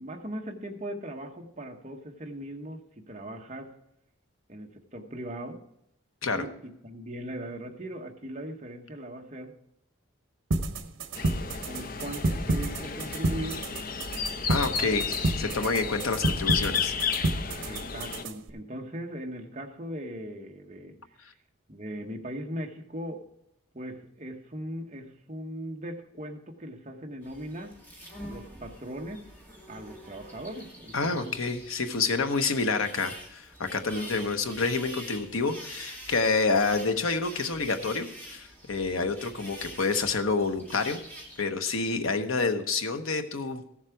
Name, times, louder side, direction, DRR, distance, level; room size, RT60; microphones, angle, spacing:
voice 1, 0.0-3.7 4.5-5.6 6.3-9.6 11.3-11.4 11.6-13.6 14.8-15.0 15.2-15.5 17.6-21.0 21.7-23.2 23.7-27.7 28.3-29.2 29.7-31.3 33.9-34.1, right 1 dB, 35° right, 3 dB, 1.1 m, -39 dB
sound 1, 10.5-18.5, right 2 dB, 80° right, 0.9 m, -30 dB
sound 2, 11.2-18.2, left 6 dB, 45° left, 0.6 m, -33 dB
voice 2, 14.5-15.0 15.4-16.9 30.9-41.0 41.4-43.6, left 4 dB, 90° left, 7 dB, 1.0 m, -28 dB
sound 3, 27.2-41.4, equal, 10° left, 2.2 m, -46 dB
15.0 x 7.3 x 4.7 m, 0.79 s
head